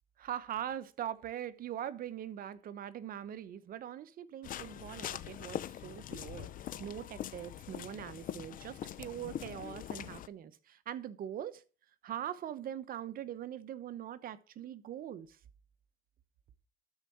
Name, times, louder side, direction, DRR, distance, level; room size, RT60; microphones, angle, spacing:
voice 1, 0.2-6.5 6.8-11.6 12.0-15.4, right 10 dB, 60° right, 1.0 m, -42 dB
sound 1, 4.4-10.3, left 11 dB, 55° left, 0.7 m, -43 dB
12.5 x 4.8 x 7.7 m
cardioid pair, 110°, 17 cm